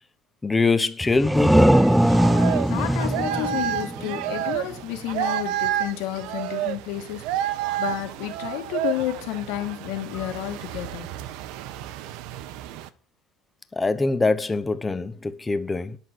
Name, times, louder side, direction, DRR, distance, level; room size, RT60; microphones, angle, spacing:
voice 1, 0.4-1.9 10.2-10.3 13.7-16.0, left 3 dB, 15° left, 0.9 m, -24 dB
sound 1, 1.0-4.6, equal, ahead, 0.4 m, -20 dB
Fishermen pushing boat in Sri Lankan beach, 1.7-12.9, right 12 dB, 70° right, 1.0 m, -30 dB
voice 2, 2.7-7.3 7.8-11.1, left 13 dB, 75° left, 2.3 m, -31 dB
10.5 x 6.2 x 7.7 m
cardioid pair, 130°, 0 cm